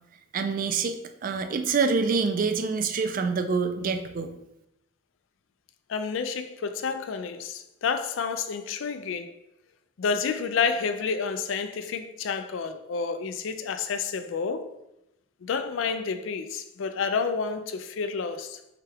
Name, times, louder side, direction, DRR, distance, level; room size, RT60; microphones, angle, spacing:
voice 1, 0.3-0.9 1.2-4.3, right 5 dB, 45° right, 0.4 m, -26 dB
voice 2, 5.9-9.3 10.0-14.7 15.4-18.6, left 5 dB, 75° left, 0.4 m, -29 dB
5.7 x 2.3 x 3.4 m
head